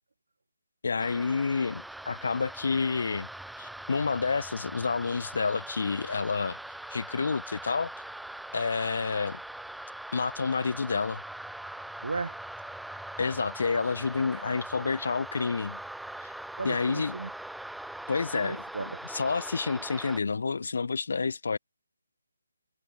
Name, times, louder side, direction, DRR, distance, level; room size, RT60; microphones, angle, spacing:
voice 1, 0.8-3.3 3.6-6.6 6.9-7.9 8.5-9.4 10.1-11.2 13.2-15.8 16.2-16.3 16.6-17.1 18.1-18.6 19.1-21.6, left 4 dB, 55° left, 0.7 m, -29 dB
sound 1, 1.0-20.2, right 1 dB, ahead, 0.6 m, -42 dB
voice 2, 12.0-12.4 14.3-14.4 16.6-17.3 18.3-19.0, right 4 dB, 60° right, 1.6 m, -35 dB
figure-of-eight pair, 145°, 0 cm